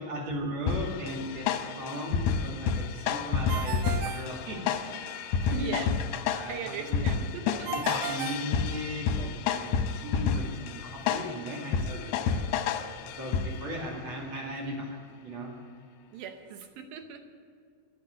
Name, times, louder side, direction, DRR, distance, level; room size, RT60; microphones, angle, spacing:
voice 1, 0.0-5.9 6.3-7.0 7.7-12.6 13.0-15.5, equal, 40° right, -3 dB, 2.2 m, -37 dB
sound 1, 0.7-13.8, left 6 dB, 75° left, 2.6 m, -30 dB
Ringtone, 3.5-5.1 7.7-9.3, right 10 dB, 90° right, 3.2 m, -37 dB
voice 2, 5.5-5.9 6.4-7.9 16.1-17.2, right 7 dB, 75° right, 5 dB, 2.3 m, -39 dB
13.5 x 10.5 x 9.7 m, 2.2 s
omnidirectional pair, 5.3 m